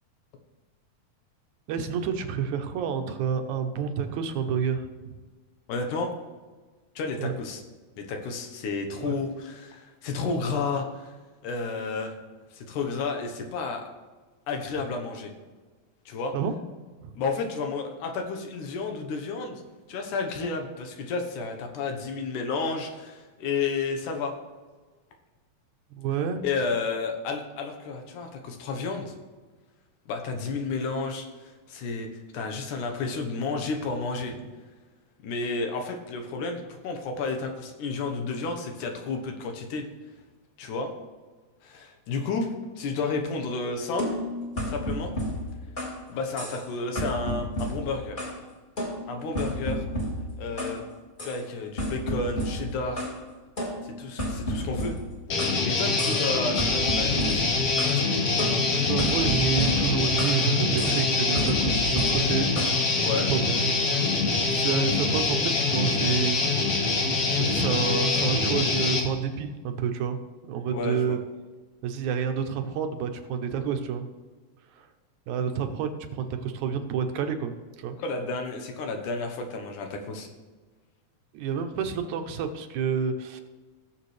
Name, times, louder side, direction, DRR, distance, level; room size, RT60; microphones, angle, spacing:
voice 1, 1.7-5.1 7.2-7.3 9.1-9.2 16.3-16.5 17.0-17.1 26.0-26.4 58.9-62.5 63.3-66.6 67.4-70.2 70.4-71.2 71.8-74.1 74.8-74.9 75.3-77.5 77.8-78.0 81.3-83.4, right 7 dB, 80° right, 7 dB, 2.2 m, -29 dB
voice 2, 5.7-6.1 7.0-7.6 8.0-11.1 11.4-12.2 12.5-13.8 14.5-15.3 16.1-16.3 17.1-19.6 19.9-24.3 26.4-29.1 30.1-32.1 32.3-34.3 35.2-39.8 40.6-40.9 41.6-42.5 42.8-44.1 44.7-45.1 46.1-48.2 49.1-49.8 50.4-50.8 51.2-53.1 53.8-55.0 55.4-57.5 63.0-63.3 70.7-71.2 78.0-80.3, left 4 dB, 90° left, 4 dB, 2.7 m, -31 dB
sound 1, 44.0-46.0 46.4-46.7 47.0-48.4 48.8-50.8 51.2-51.4 51.8-53.2 53.6-55.6 56.0-56.3 56.6-58.0 58.4-60.4 60.8-61.0 61.3-62.8, equal, 20° left, 1.7 m, -32 dB
Guitar, 55.3-69.0, left 3 dB, 60° left, 2.2 m, -25 dB
17.5 x 7.2 x 3.3 m, 1.3 s
omnidirectional pair, 3.5 m